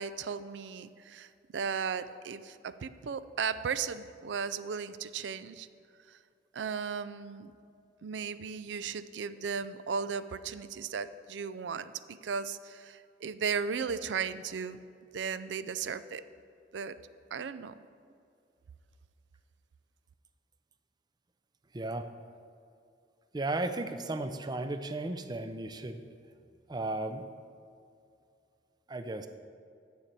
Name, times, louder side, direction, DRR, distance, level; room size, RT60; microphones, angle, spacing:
voice 1, 0.0-5.7 6.1-6.2 6.5-7.5 8.0-14.8 15.1-16.3 16.7-17.0 17.3-17.8, right 6 dB, 75° right, 14 dB, 0.4 m, -36 dB
voice 2, 21.7-22.1 23.3-26.0 26.7-27.2 28.9-29.3, right 2 dB, 25° right, 9 dB, 0.5 m, -35 dB
7.5 x 7.0 x 8.1 m, 2.4 s
head